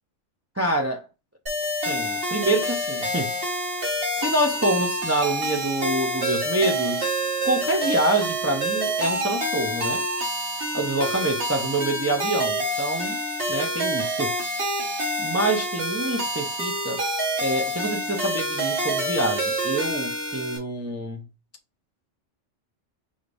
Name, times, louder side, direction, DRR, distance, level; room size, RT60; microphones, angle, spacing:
voice 1, 0.6-1.0 1.8-3.3 4.1-7.1 7.4-10.1 10.7-13.2 13.5-14.3 15.2-17.0 17.4-21.3, right 1 dB, 25° right, 0.3 m, -26 dB
sound 1, 1.5-20.6, right 1 dB, 50° right, 1.5 m, -27 dB
5.4 x 3.3 x 2.5 m
omnidirectional pair, 1.3 m